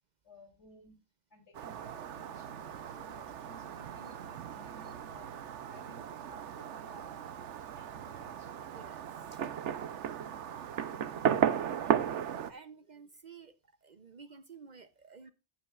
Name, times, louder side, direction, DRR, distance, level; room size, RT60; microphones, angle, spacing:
voice 1, 0.2-1.0 1.3-7.1 7.7-8.5 10.8-11.2, left 1 dB, 75° left, 3 dB, 3.5 m, -58 dB
Fireworks, 1.5-12.5, right 9 dB, 90° right, 1.1 m, -36 dB
voice 2, 8.7-9.0 9.3-9.4 11.8-12.1 12.5-13.5 13.8-15.3, right 5 dB, 45° right, 12 dB, 0.7 m, -53 dB
14.5 x 8.9 x 2.4 m, 0.28 s
omnidirectional pair, 1.2 m